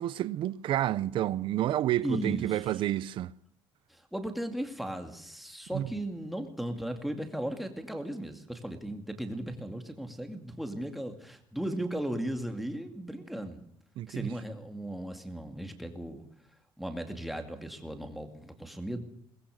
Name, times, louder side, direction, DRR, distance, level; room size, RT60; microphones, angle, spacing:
voice 1, 0.0-3.3 5.7-5.9 14.0-14.3, right 13 dB, 60° right, 0.8 m, -30 dB
voice 2, 2.0-2.7 3.9-13.6 14.1-16.2 16.8-19.0, right 1 dB, ahead, 2.3 m, -36 dB
22.0 x 20.5 x 6.6 m
cardioid pair, 160°, 10 cm